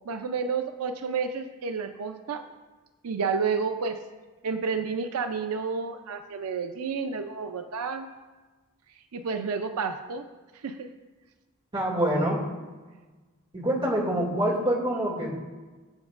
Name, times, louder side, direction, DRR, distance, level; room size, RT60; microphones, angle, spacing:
voice 1, 0.1-2.4 3.0-4.0 4.4-8.1 9.1-10.3 10.6-10.9, right 5 dB, 85° right, 7 dB, 0.5 m, -30 dB
voice 2, 11.7-12.4 13.5-15.3, right 1 dB, 25° right, -4 dB, 2.2 m, -25 dB
19.0 x 7.8 x 2.5 m, 1.3 s
head